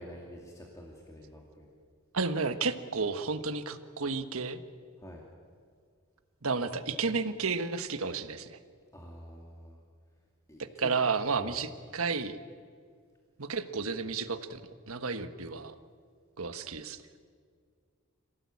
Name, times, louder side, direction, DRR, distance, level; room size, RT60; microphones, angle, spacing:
voice 1, 0.0-1.7 5.0-5.2 8.9-9.8 10.5-11.0 11.3-11.6, equal, 15° left, -1 dB, 2.4 m, -48 dB
voice 2, 2.1-4.6 6.4-8.6 10.8-12.4 13.4-14.6 14.9-15.7 16.4-17.0, right 4 dB, 70° right, 10 dB, 1.4 m, -32 dB
27.0 x 17.5 x 8.5 m, 2.1 s
head